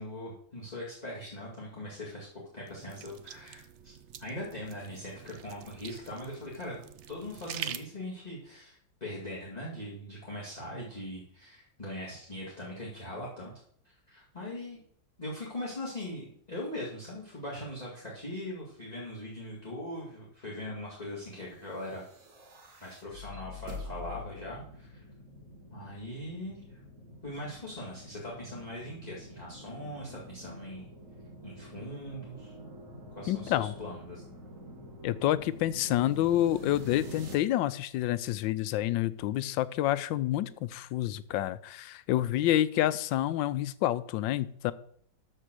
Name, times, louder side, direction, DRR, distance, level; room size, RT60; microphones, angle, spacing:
voice 1, 0.0-2.3 2.5-3.9 4.2-6.8 7.1-13.5 13.8-14.8 15.2-22.0 22.8-25.0 25.7-26.8 27.2-30.9 31.4-32.5 33.1-34.2, left 1 dB, 20° left, -6 dB, 2.1 m, -41 dB
sound 1, 2.7-7.8, right 9 dB, 75° right, 0.6 m, -45 dB
sound 2, 21.6-37.3, left 1 dB, 45° right, 1.9 m, -47 dB
voice 2, 33.3-33.7 35.0-44.7, left 13 dB, 85° left, 16 dB, 1.3 m, -28 dB
12.5 x 4.5 x 6.4 m, 0.66 s
omnidirectional pair, 2.0 m